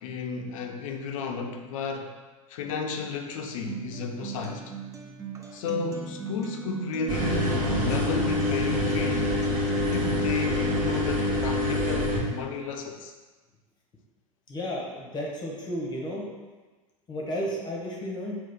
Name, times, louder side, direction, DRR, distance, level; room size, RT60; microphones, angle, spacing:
voice 1, 0.0-2.2 2.5-4.7 5.5-9.4 9.9-13.1, left 4 dB, 70° left, 5 dB, 0.5 m, -33 dB
Acoustic guitar, 3.7-11.7, right 7 dB, 15° right, 0.4 m, -38 dB
sound 1, 7.1-12.2, left 1 dB, 50° right, 1.2 m, -26 dB
voice 2, 14.5-16.3 17.1-18.4, equal, 25° left, -2 dB, 0.8 m, -33 dB
3.7 x 2.4 x 3.4 m, 1.3 s
hypercardioid pair, 90°, 18 cm